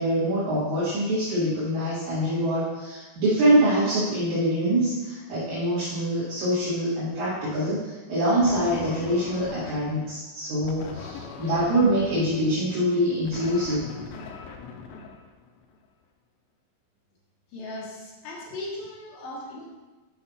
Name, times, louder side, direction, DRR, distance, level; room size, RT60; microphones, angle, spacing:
voice 1, 0.0-13.9, right 1 dB, 50° right, -11 dB, 2.5 m, -24 dB
sound 1, 8.4-10.0 10.6-15.8, left 5 dB, 80° left, 2.8 m, -41 dB
voice 2, 17.5-19.7, left 2 dB, 65° left, -4 dB, 2.6 m, -37 dB
8.6 x 5.6 x 4.1 m, 1.2 s
omnidirectional pair, 5.7 m